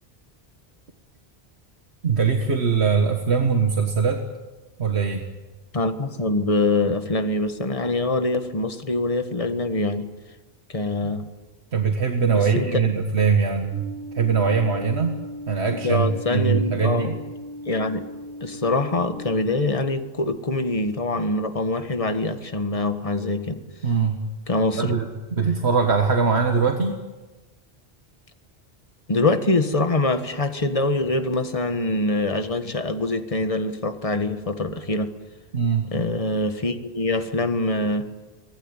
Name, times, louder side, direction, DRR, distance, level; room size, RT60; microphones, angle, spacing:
voice 1, 2.0-4.2 4.8-5.2 11.0-11.1 11.7-13.9 14.2-15.2 15.5-17.2 23.8-24.2 24.8-27.0 35.5-35.9, right 5 dB, 85° right, 4 dB, 1.9 m, -22 dB
voice 2, 5.7-10.1 10.7-11.3 12.3-12.8 15.7-17.1 17.6-18.0 18.4-23.6 24.5-25.0 29.1-35.1 35.9-38.1, left 2 dB, 35° left, 8 dB, 1.6 m, -24 dB
sound 1, 13.7-19.2, equal, 75° left, 6.0 m, -37 dB
25.0 x 19.0 x 9.0 m, 1.2 s
omnidirectional pair, 1.1 m